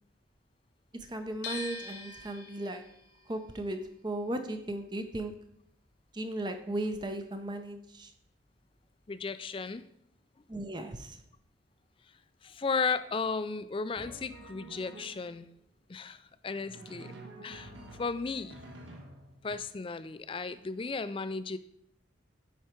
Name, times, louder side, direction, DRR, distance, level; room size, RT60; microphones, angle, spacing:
voice 1, 1.1-2.8 3.3-5.3 6.1-8.1 10.5-11.2, right 1 dB, 20° right, 7 dB, 0.5 m, -36 dB
sound 1, 1.4-7.5 7.7-9.0, left 3 dB, 60° left, 1.1 m, -46 dB
voice 2, 9.1-9.8 12.4-15.5 15.9-17.1 17.4-17.7 18.0-18.6 19.4-21.6, left 4 dB, 25° left, 13 dB, 0.3 m, -34 dB
Drum, 13.9-15.4 16.5-19.6, right 1 dB, 70° right, 1.3 m, -49 dB
10.0 x 4.7 x 4.4 m, 0.73 s
head